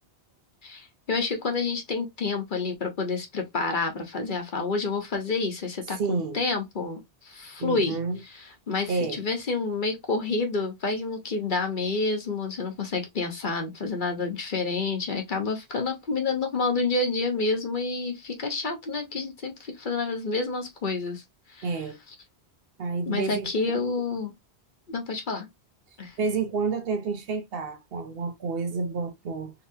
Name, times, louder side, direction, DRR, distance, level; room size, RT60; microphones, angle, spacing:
voice 1, 0.6-8.0 8.2-21.2 21.5-21.7 23.0-24.3 24.9-25.5 26.0-26.2, left 3 dB, 50° left, 1.1 m, -29 dB
voice 2, 5.9-6.4 7.6-8.2 8.9-9.2 21.6-22.0 22.8-23.9 26.2-29.5, right 4 dB, 65° right, 0.8 m, -30 dB
3.8 x 2.9 x 2.7 m
omnidirectional pair, 1.1 m